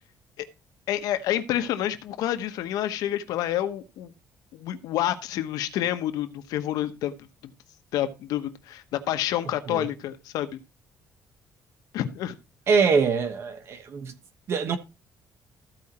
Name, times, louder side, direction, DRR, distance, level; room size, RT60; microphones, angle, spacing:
voice 1, 0.9-4.1 4.5-7.1 7.9-10.6 11.9-12.4, left 12 dB, 90° left, 1.0 m, -28 dB
voice 2, 12.7-14.1 14.5-14.8, right 5 dB, 45° right, 1.2 m, -24 dB
14.5 x 4.9 x 4.2 m
cardioid pair, 160°, 6 cm